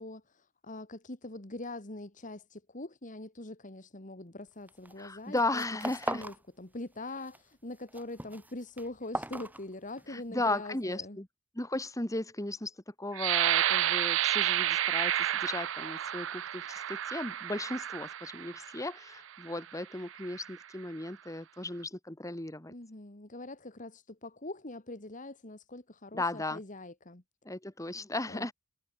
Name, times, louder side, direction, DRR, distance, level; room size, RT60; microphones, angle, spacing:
voice 1, 0.0-5.6 6.1-11.2 22.7-27.2 28.3-28.5, left 2 dB, 40° left, 2.2 m, -43 dB
sound 1, 4.7-5.0 5.3-6.4 6.7-7.4 7.7-10.2, right 1 dB, 10° right, 2.5 m, -39 dB
voice 2, 5.0-6.2 10.1-11.3 11.6-22.7 26.1-26.6 27.5-28.5, left 2 dB, 15° left, 1.9 m, -36 dB
sound 2, 13.1-18.8 19.5-19.6 20.1-20.5, right 11 dB, 70° right, 0.5 m, -30 dB
head